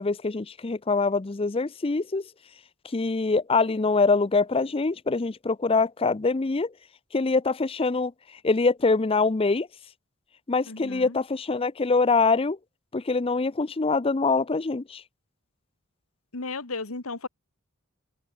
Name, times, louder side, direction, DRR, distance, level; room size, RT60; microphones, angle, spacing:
voice 1, 0.0-2.2 2.9-6.7 7.1-8.1 8.4-9.7 10.5-12.6 12.9-15.0, left 3 dB, 25° left, 0.5 m, -24 dB
voice 2, 10.7-11.2 16.3-17.3, left 3 dB, 80° left, 1.9 m, -34 dB
open air
head